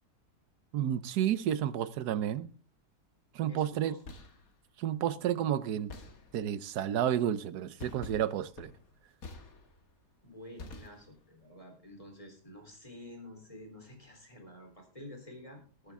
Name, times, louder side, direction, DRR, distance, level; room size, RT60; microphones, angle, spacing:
voice 1, 0.7-2.5 3.3-3.9 4.8-5.9 6.3-8.7, right 10 dB, 75° right, 1.3 m, -31 dB
voice 2, 3.5-4.0 10.2-15.9, left 1 dB, 20° left, 3.6 m, -50 dB
sound 1, 3.8-4.5 5.9-6.6 7.8-10.0 10.6-11.4, left 3 dB, 55° left, 2.0 m, -48 dB
19.5 x 8.4 x 3.6 m
omnidirectional pair, 1.8 m